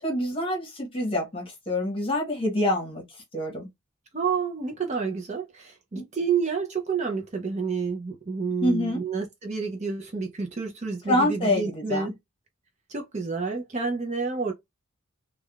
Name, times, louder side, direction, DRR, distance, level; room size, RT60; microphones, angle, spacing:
voice 1, 0.0-3.0 3.3-3.7 5.9-6.0 8.6-9.0 11.1-12.1, left 1 dB, 25° left, 1.0 m, -26 dB
voice 2, 4.1-12.1 12.9-14.5, right 5 dB, 30° right, 0.5 m, -29 dB
3.3 x 2.2 x 2.3 m
head